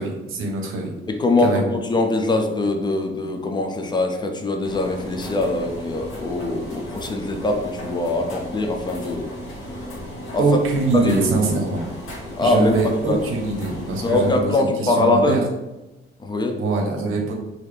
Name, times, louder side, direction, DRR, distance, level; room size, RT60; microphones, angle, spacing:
voice 1, 0.0-0.9 1.4-1.7 10.4-11.8 12.4-15.4 16.5-17.3, right 3 dB, 80° right, 2 dB, 0.8 m, -23 dB
voice 2, 1.1-9.3 10.3-10.4 10.9-11.1 12.4-13.2 14.0-15.3 16.2-16.6, left 2 dB, 20° left, 3 dB, 0.3 m, -22 dB
sound 1, 4.6-14.4, equal, 80° left, 1.3 m, -35 dB
4.0 x 2.7 x 3.2 m, 1.0 s
cardioid pair, 175°, 21 cm